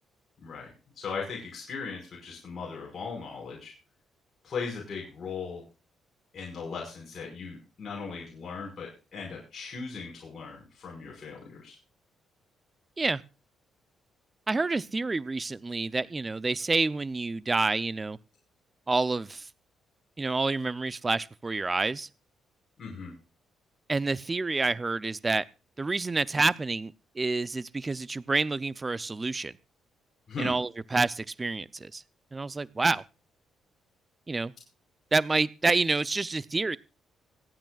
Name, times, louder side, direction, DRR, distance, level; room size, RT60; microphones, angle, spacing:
voice 1, 0.4-0.7 1.0-3.7 4.4-5.6 6.3-11.8 22.8-23.1 30.3-30.5, left 5 dB, 45° left, -2 dB, 5.1 m, -38 dB
voice 2, 14.5-18.2 18.9-19.5 20.2-22.1 23.9-25.4 25.8-29.5 30.4-32.0 32.3-33.0 34.3-34.5 35.1-36.8, right 3 dB, 25° right, 18 dB, 0.6 m, -28 dB
26.0 x 8.9 x 2.4 m, 0.31 s
cardioid pair, 90°, 0 cm